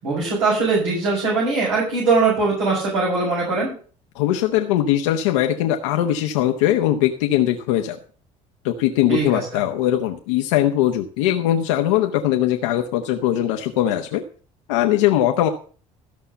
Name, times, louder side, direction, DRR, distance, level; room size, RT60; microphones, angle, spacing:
voice 1, 0.0-3.7 9.1-9.4, right 4 dB, 85° right, -6 dB, 6.2 m, -21 dB
voice 2, 4.1-8.0 8.6-14.2 14.7-15.5, left 12 dB, 90° left, 4 dB, 1.0 m, -20 dB
13.5 x 5.7 x 6.9 m, 0.41 s
supercardioid pair, 80°, 15 cm